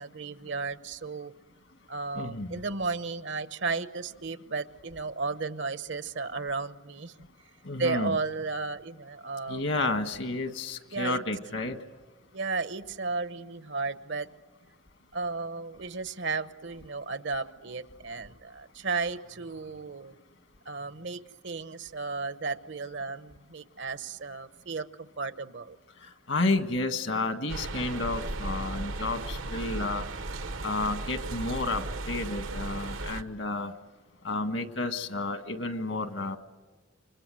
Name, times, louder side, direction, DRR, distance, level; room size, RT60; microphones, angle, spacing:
voice 1, 0.0-1.3 1.9-7.1 7.8-9.7 10.9-11.2 12.3-14.3 15.1-20.2 20.6-24.9 25.2-25.8, right 4 dB, 60° right, 13 dB, 1.0 m, -34 dB
voice 2, 2.1-2.6 7.6-8.2 9.5-11.8 26.0-30.1 30.6-33.7 34.2-36.4, left 2 dB, 65° left, 8 dB, 1.7 m, -31 dB
sound 1, 27.5-33.2, right 2 dB, 75° right, 1.2 m, -36 dB
28.5 x 25.0 x 7.8 m, 1.3 s
head